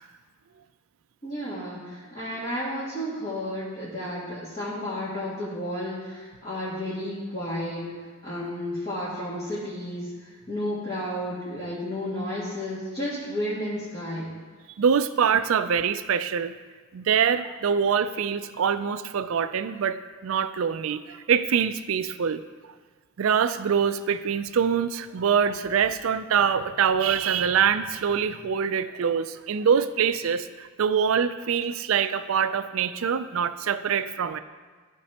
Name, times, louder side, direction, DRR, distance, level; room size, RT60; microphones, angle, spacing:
voice 1, 1.2-7.9 8.2-14.3, left 1 dB, 30° left, -11 dB, 2.1 m, -32 dB
voice 2, 14.8-16.5 16.9-22.4 23.2-34.4, right 7 dB, 70° right, 12 dB, 0.4 m, -24 dB
15.0 x 5.3 x 2.9 m, 1.5 s
head